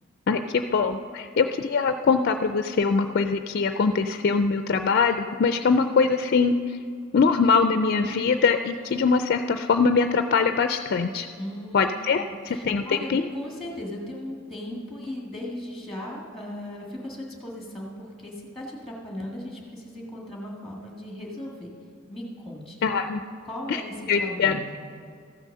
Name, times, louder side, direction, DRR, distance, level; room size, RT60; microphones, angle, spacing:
voice 1, 0.3-6.5 7.1-11.3 11.7-13.3 22.8-23.2 23.7-23.8 24.1-24.6, left 5 dB, 50° left, 8 dB, 0.4 m, -22 dB
voice 2, 11.4-21.7 22.1-22.8 23.4-24.7, left 1 dB, ahead, -2 dB, 1.8 m, -37 dB
14.0 x 6.3 x 6.6 m, 2.3 s
head